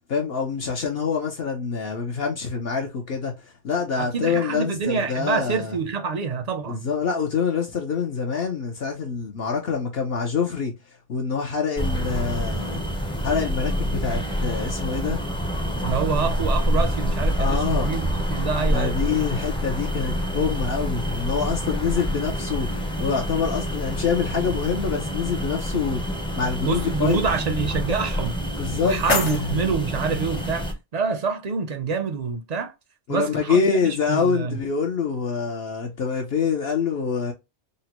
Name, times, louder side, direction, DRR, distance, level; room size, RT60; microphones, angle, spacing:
voice 1, 0.1-5.7 6.7-10.7 11.1-12.8 13.2-15.2 17.4-17.9 18.7-27.2 28.6-29.5 33.1-37.3, left 6 dB, 65° left, 0.9 m, -26 dB
voice 2, 4.0-6.9 15.8-19.1 26.7-28.3 28.8-32.7 33.1-34.6, right 5 dB, 50° right, 0.5 m, -26 dB
sound 1, 11.8-30.7, equal, 5° left, 0.4 m, -27 dB
sound 2, 28.3-30.3, left 3 dB, 85° left, 1.4 m, -30 dB
3.9 x 2.1 x 2.8 m
omnidirectional pair, 1.2 m